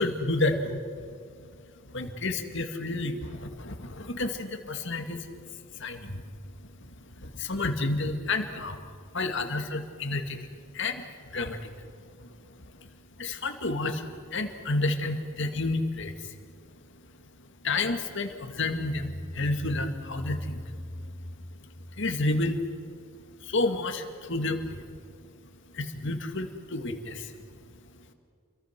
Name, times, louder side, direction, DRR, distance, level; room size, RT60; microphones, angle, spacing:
voice 1, 0.0-28.1, left 2 dB, 60° left, 6 dB, 2.1 m, -32 dB
sound 1, 18.5-23.0, left 1 dB, 20° left, 0.8 m, -41 dB
29.0 x 23.0 x 6.1 m, 2.2 s
head